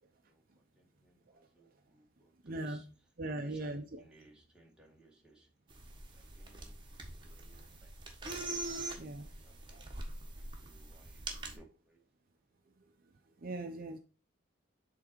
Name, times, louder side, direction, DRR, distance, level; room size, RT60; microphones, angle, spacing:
voice 1, 0.2-2.9 3.3-5.5 6.1-6.8 7.1-7.9 9.2-9.9 10.2-12.0, right 3 dB, 5° right, 1.7 m, -61 dB
voice 2, 1.3-1.7 2.4-2.8 3.2-4.0 7.5-7.8 9.0-9.3 9.7-9.9 12.8-14.0, right 2 dB, 45° right, 0.7 m, -42 dB
sound 1, 5.7-11.6, right 2 dB, 25° right, 1.4 m, -44 dB
7.5 x 3.9 x 4.4 m
head